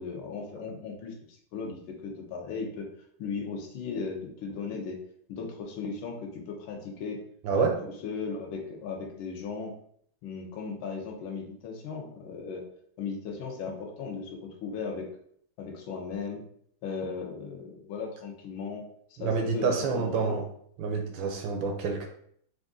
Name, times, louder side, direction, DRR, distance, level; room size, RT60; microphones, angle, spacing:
voice 1, 0.0-2.9 3.2-5.0 5.3-7.2 7.5-9.7 10.2-12.6 13.0-15.1 15.6-16.4 16.8-18.8 19.1-20.4, left 5 dB, 70° left, 0 dB, 1.6 m, -37 dB
voice 2, 7.4-7.8 19.2-20.5 20.8-22.1, right 5 dB, 70° right, 3 dB, 1.3 m, -28 dB
4.6 x 2.6 x 3.6 m, 0.65 s
omnidirectional pair, 2.4 m